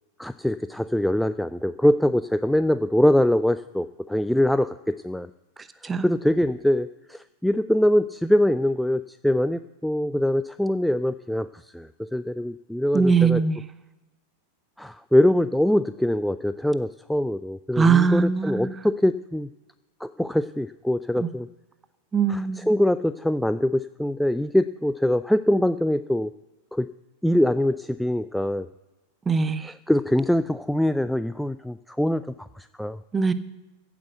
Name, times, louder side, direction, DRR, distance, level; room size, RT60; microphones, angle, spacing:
voice 1, 0.2-5.3 6.0-11.5 11.7-13.4 14.8-19.5 20.0-21.5 22.3-26.3 26.7-26.9 27.2-28.7 29.6-33.0, left 1 dB, ahead, 0.3 m, -23 dB
voice 2, 12.9-13.6 17.8-18.7 21.2-21.3 22.1-22.7 29.3-29.7 33.1-33.3, right 5 dB, 15° right, 0.8 m, -21 dB
15.0 x 6.0 x 7.9 m
figure-of-eight pair, 90°, 0 cm